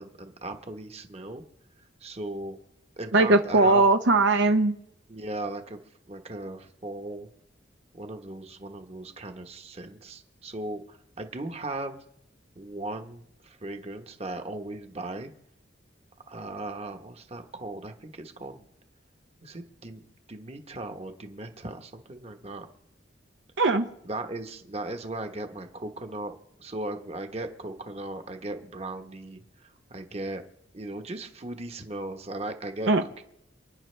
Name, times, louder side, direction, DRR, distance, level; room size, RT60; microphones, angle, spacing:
voice 1, 0.0-1.4 2.0-2.6 3.0-3.9 5.1-5.8 6.1-7.3 7.9-12.0 12.5-15.3 16.3-18.6 19.4-20.0 20.3-22.7 24.0-26.3 26.6-30.4 30.7-32.9 33.2-33.3, right 2 dB, 35° right, 6 dB, 1.1 m, -37 dB
voice 2, 3.1-4.7 23.6-23.9 32.9-33.0, right 2 dB, 70° right, 7 dB, 0.7 m, -20 dB
29.0 x 10.0 x 3.3 m, 0.76 s
head